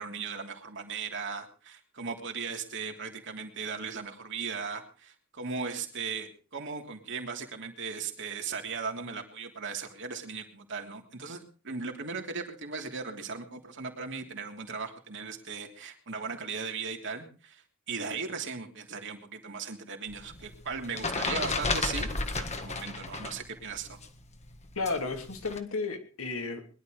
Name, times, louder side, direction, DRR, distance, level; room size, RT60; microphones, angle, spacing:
voice 1, 0.0-24.0, right 5 dB, 60° right, 3 dB, 3.1 m, -37 dB
sound 1, 20.1-23.4 23.7-25.6, left 3 dB, 30° left, 1.7 m, -33 dB
voice 2, 24.7-26.7, left 3 dB, 70° left, 4 dB, 3.1 m, -33 dB
22.0 x 11.5 x 5.1 m, 0.37 s
head